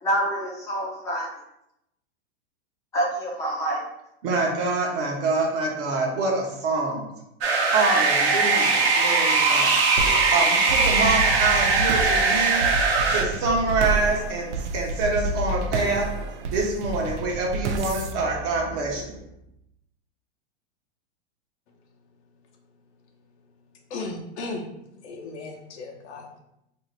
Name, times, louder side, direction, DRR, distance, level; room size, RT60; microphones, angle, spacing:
voice 1, 0.0-1.3 2.9-3.8, right 1 dB, 10° left, -4 dB, 0.5 m, -26 dB
voice 2, 4.2-7.1 7.7-9.8 10.3-12.7 13.1-16.1 16.5-19.2, right 3 dB, 30° right, 0 dB, 0.7 m, -26 dB
sound 1, 7.4-13.2, right 4 dB, 60° right, 0.9 m, -20 dB
sound 2, 10.0-19.4, right 3 dB, 85° right, 0.6 m, -30 dB
voice 3, 23.9-24.6 25.0-26.4, left 3 dB, 75° left, 0 dB, 0.8 m, -35 dB
2.7 x 2.4 x 4.2 m, 0.82 s
supercardioid pair, 155°, 34 cm